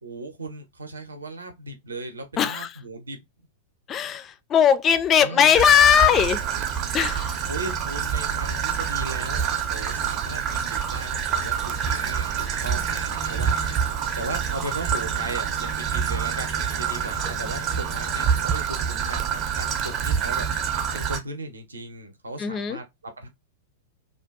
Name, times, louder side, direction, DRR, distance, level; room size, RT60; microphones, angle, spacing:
voice 1, 0.0-3.2 5.2-5.5 7.5-13.8 14.2-20.5 20.9-23.3, right 2 dB, 75° right, 0.6 m, -37 dB
voice 2, 2.4-2.7 3.9-6.4 6.9-7.4 22.4-22.8, left 8 dB, 25° left, 0.3 m, -19 dB
Traffic noise roadway noise / Trickle dribble, 5.5-21.2, right 7 dB, 35° right, 0.5 m, -27 dB
sound 1, 11.3-18.5, left 3 dB, 70° left, 0.9 m, -44 dB
2.6 x 2.2 x 2.3 m
figure-of-eight pair, 95°, 0 cm